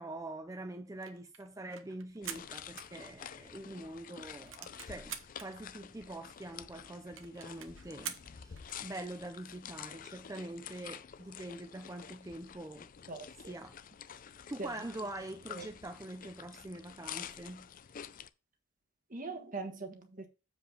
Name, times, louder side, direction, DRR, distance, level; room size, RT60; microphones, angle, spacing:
voice 1, 0.0-12.9 13.5-13.8 14.1-17.7, right 1 dB, 15° right, 0.6 m, -44 dB
sound 1, 0.9-3.5 3.9-4.0 4.2-5.5 6.1-6.2 6.4-6.5 6.7-6.8 7.2-8.8, right 9 dB, 90° right, 1.0 m, -46 dB
sound 2, 2.2-18.3, left 8 dB, 45° left, 0.4 m, -49 dB
voice 2, 13.1-13.5 14.6-14.7 15.5-15.7 19.1-20.3, right 3 dB, 45° right, 1.5 m, -42 dB
7.2 x 5.2 x 5.1 m
head